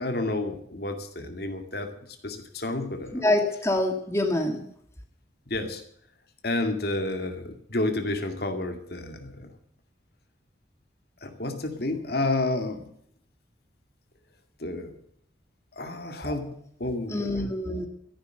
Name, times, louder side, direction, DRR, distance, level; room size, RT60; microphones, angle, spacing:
voice 1, 0.0-1.9 2.2-3.2 5.5-5.8 6.4-9.5 11.2-12.9 14.6-15.0 15.8-17.4, left 2 dB, 60° left, 6 dB, 2.2 m, -30 dB
voice 2, 3.1-4.7 16.2-16.4 17.1-17.9, left 1 dB, 15° left, 3 dB, 1.9 m, -26 dB
14.0 x 11.0 x 6.6 m, 0.67 s
head